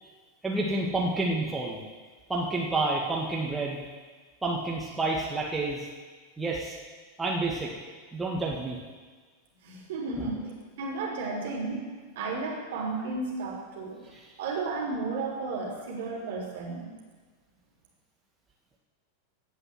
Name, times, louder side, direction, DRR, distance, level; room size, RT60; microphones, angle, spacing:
voice 1, 0.4-1.8 2.3-3.8 4.4-5.9 6.4-6.8 7.2-7.7 8.1-8.8 14.1-14.3, right 2 dB, 10° right, -3 dB, 2.0 m, -29 dB
voice 2, 9.6-14.1 14.4-16.9, right 3 dB, 55° right, -2 dB, 3.5 m, -33 dB
16.5 x 5.6 x 7.8 m, 1.4 s
figure-of-eight pair, 90°, 0 cm